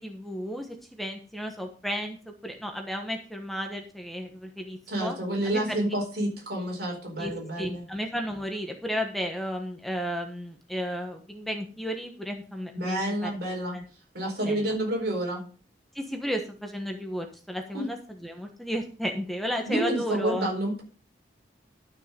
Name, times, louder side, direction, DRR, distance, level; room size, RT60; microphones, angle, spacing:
voice 1, 0.0-2.2 2.4-5.2 5.4-5.7 7.2-7.3 7.6-13.3 13.7-13.8 14.4-14.7 15.9-20.5, equal, ahead, 3 dB, 1.2 m, -33 dB
voice 2, 4.9-7.8 12.7-13.8 14.1-15.4 17.7-17.8 19.7-20.8, right 1 dB, 60° right, 0 dB, 4.5 m, -29 dB
12.5 x 6.5 x 5.2 m, 0.37 s
head